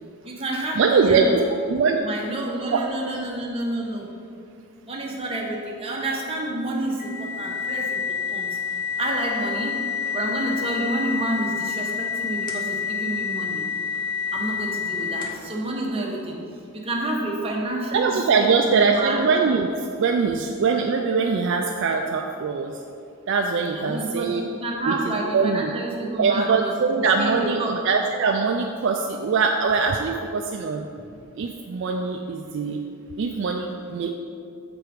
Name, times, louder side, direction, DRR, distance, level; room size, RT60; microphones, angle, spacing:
voice 1, 0.2-1.3 2.0-4.1 4.8-9.8 10.1-13.6 14.3-16.4 16.8-19.3 23.7-24.3 24.6-26.7 27.2-27.7 30.9-31.2, right 2 dB, 25° right, -2 dB, 0.9 m, -29 dB
voice 2, 0.8-1.4 1.7-2.0 2.7-2.8 17.9-22.8 23.3-24.4 24.9-25.7 26.2-30.9 31.4-32.8 33.2-34.1, right 5 dB, 55° right, 3 dB, 0.3 m, -22 dB
sound 1, 7.0-15.5, left 6 dB, 35° left, 0.7 m, -28 dB
6.9 x 4.7 x 5.0 m, 2.5 s
head